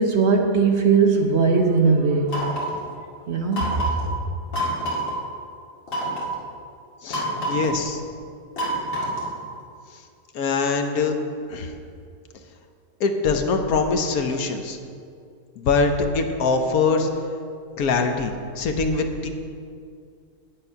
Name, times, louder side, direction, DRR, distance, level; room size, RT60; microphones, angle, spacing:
voice 1, 0.0-2.4 3.3-3.7, right 4 dB, 55° right, 3 dB, 0.9 m, -19 dB
sound 1, 2.3-2.8 3.5-4.1 4.5-5.2 5.9-6.3 7.1-7.8 8.6-9.4, right 1 dB, 55° left, 2.6 m, -27 dB
voice 2, 7.0-8.0 10.3-11.1 11.5-11.7 13.0-14.8 15.6-17.1 17.8-19.3, left 4 dB, 75° left, 5 dB, 1.3 m, -23 dB
8.8 x 8.1 x 5.6 m, 2.3 s
omnidirectional pair, 1.6 m